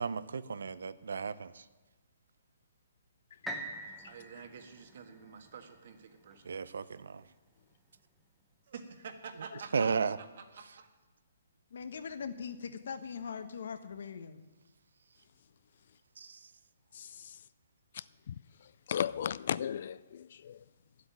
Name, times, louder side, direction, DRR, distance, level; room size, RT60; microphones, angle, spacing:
voice 1, 0.0-1.5 6.5-7.2 9.7-10.2 16.2-16.4, right 5 dB, 80° right, 0.6 m, -34 dB
sound 1, 3.5-7.4 8.0-8.1, right 1 dB, ahead, 0.9 m, -45 dB
voice 2, 4.0-6.5 8.7-10.9, right 6 dB, 50° right, 1.6 m, -48 dB
voice 3, 11.7-14.4, left 6 dB, 65° left, 1.2 m, -41 dB
voice 4, 16.9-17.4 17.9-18.3 18.9-20.6, left 9 dB, 45° left, 0.3 m, -36 dB
11.0 x 8.1 x 9.2 m
hypercardioid pair, 170°, 0 cm